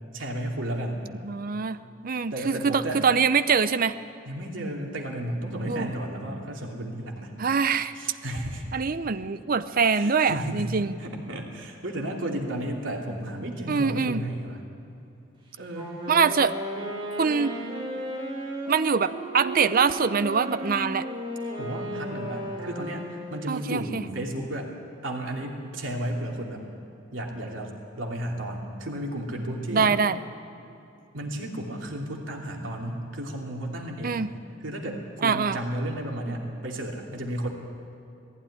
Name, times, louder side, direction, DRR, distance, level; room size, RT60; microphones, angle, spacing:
voice 1, 0.1-1.0 2.3-3.0 4.2-7.3 7.9-8.7 9.9-10.7 11.0-14.6 15.6-15.9 21.6-24.7 25.0-26.6 27.1-30.0 31.1-34.3 34.6-37.5, right 1 dB, 75° right, -1 dB, 2.9 m, -33 dB
voice 2, 1.2-1.8 2.0-3.9 5.7-5.9 7.4-7.9 8.7-10.9 13.7-14.2 16.1-16.5 17.2-17.5 18.7-21.0 23.5-24.0 29.7-30.2 34.0-34.3 35.2-35.6, right 5 dB, 45° right, 13 dB, 0.6 m, -24 dB
Wind instrument woodwind instrument, 15.7-23.6, equal, 25° right, 4.7 m, -35 dB
19.0 x 15.0 x 10.0 m, 2.7 s
head